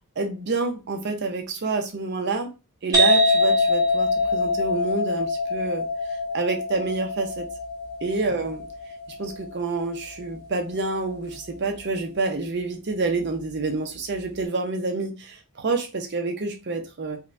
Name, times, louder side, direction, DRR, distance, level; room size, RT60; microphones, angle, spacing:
voice 1, 0.2-2.5 2.8-7.5 8.0-8.6 9.2-17.2, right 3 dB, 50° right, 0.5 m, -28 dB
sound 1, 2.9-10.4, left 2 dB, 15° right, 1.2 m, -24 dB
5.4 x 2.1 x 2.5 m
head